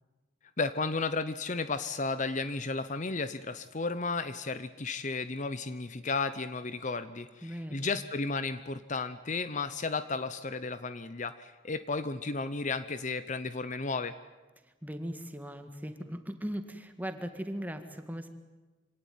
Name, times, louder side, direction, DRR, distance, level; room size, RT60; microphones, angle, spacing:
voice 1, 0.6-14.1, left 3 dB, 40° left, 13 dB, 0.8 m, -33 dB
voice 2, 7.4-8.0 14.6-18.3, equal, 10° right, 8 dB, 1.8 m, -39 dB
26.0 x 17.5 x 9.4 m, 1.2 s
head